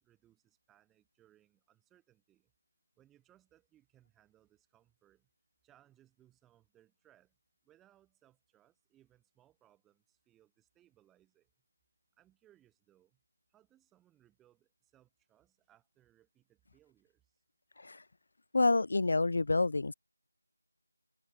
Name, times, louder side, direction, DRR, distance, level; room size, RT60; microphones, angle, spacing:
voice 1, 0.0-2.5 3.0-5.3 5.6-7.4 7.6-11.5 12.2-13.2 13.5-17.4, right 13 dB, 5° right, 7.3 m, -68 dB
voice 2, 18.5-19.9, left 3 dB, 45° left, 0.5 m, -28 dB
figure-of-eight pair, 170°, 0 cm